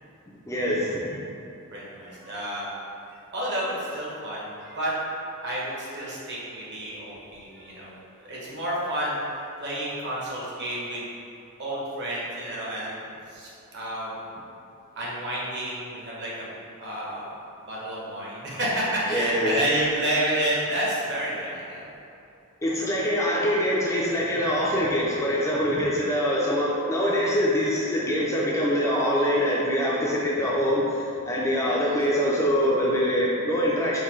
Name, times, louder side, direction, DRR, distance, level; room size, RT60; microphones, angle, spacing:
voice 1, 0.5-1.2 19.1-19.5 22.6-34.0, equal, 15° left, -5 dB, 0.3 m, -24 dB
voice 2, 1.7-2.7 3.1-4.9 5.4-7.9 8.3-9.2 9.6-11.1 11.6-14.2 15.0-16.5 16.8-17.3 17.6-21.9 31.7-32.0, right 1 dB, 50° right, -6 dB, 0.8 m, -30 dB
3.7 x 2.6 x 3.0 m, 2.6 s
head